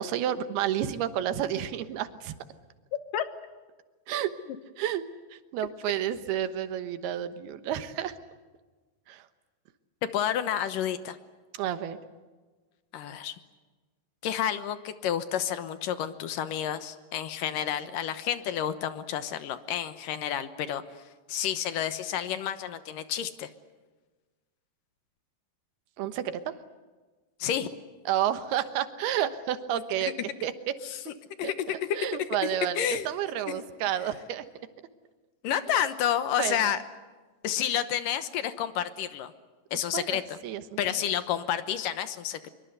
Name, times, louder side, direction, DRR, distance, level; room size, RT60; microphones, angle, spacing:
voice 1, 0.0-2.3 4.1-4.3 4.8-5.0 5.5-8.1 9.1-9.2 11.6-12.0 26.0-26.5 28.1-30.1 30.4-30.8 31.4-31.5 32.0-34.4 36.4-36.8 39.9-40.6, right 10 dB, 70° right, 11 dB, 3.0 m, -30 dB
voice 2, 10.1-11.2 12.9-13.3 14.2-20.8 21.3-23.5 27.4-27.7 30.2-30.3 30.8-31.0 31.4-32.3 32.8-33.1 33.5-33.6 35.4-36.8 37.4-39.3 39.7-40.4 40.8-42.5, left 10 dB, 65° left, 11 dB, 2.3 m, -30 dB
25.0 x 24.0 x 8.1 m, 1.3 s
omnidirectional pair, 4.8 m